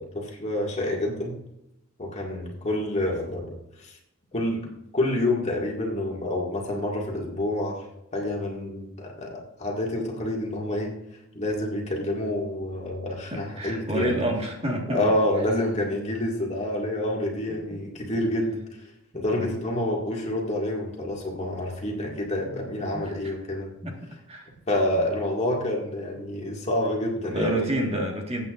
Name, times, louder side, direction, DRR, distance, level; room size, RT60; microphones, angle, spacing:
voice 1, 0.0-1.4 2.0-4.0 4.3-4.6 4.9-7.9 8.1-10.9 11.3-14.2 14.9-18.5 19.1-23.7 24.7-27.7, left 1 dB, 30° left, -2 dB, 2.0 m, -28 dB
voice 2, 13.3-15.1 17.7-17.8 19.3-19.5 22.4-22.7 22.9-23.3 23.8-23.9 24.3-24.5 27.3-28.5, right 1 dB, 30° right, 1 dB, 1.7 m, -29 dB
19.5 x 8.6 x 2.5 m, 0.85 s
head